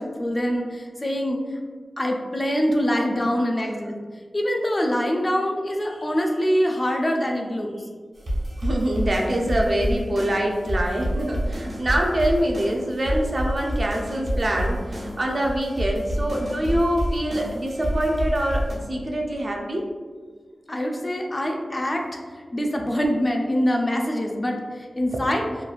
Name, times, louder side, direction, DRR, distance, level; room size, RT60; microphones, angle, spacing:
voice 1, 0.0-1.4 2.0-3.9 4.3-7.7 20.7-22.2 22.5-25.4, equal, 25° left, 1 dB, 0.3 m, -24 dB
sound 1, 8.1-18.7, equal, 65° right, 0.9 m, -28 dB
voice 2, 8.6-19.8 25.1-25.2, right 1 dB, 50° right, 0 dB, 0.4 m, -25 dB
3.0 x 2.3 x 2.3 m, 1.5 s
wide cardioid pair, 90°, 0 cm